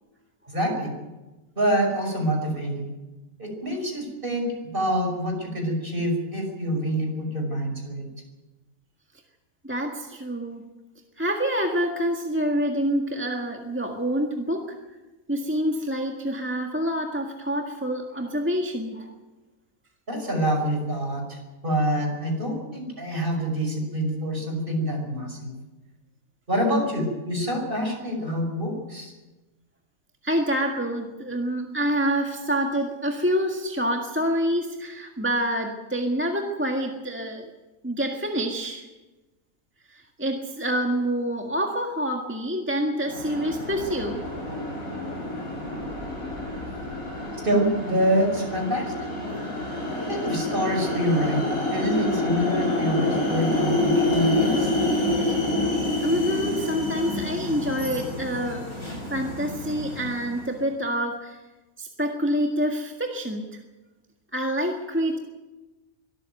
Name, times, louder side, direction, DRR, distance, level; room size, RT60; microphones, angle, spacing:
voice 1, 0.5-0.9 1.6-2.9 3.4-8.1 20.1-25.5 26.5-29.1 47.4-49.1 50.1-51.4 51.7-54.7, equal, 40° right, 2 dB, 5.8 m, -26 dB
voice 2, 9.6-10.6 11.2-14.7 15.3-19.1 30.2-37.5 37.8-38.9 39.9-44.2 55.2-55.4 56.0-58.7 59.1-61.4 61.8-63.6 64.3-65.2, equal, 10° right, 2 dB, 1.7 m, -27 dB
sound 1, 43.0-60.5, left 2 dB, 90° left, 7.4 m, -28 dB
24.0 x 13.5 x 9.2 m, 1.1 s
omnidirectional pair, 1.5 m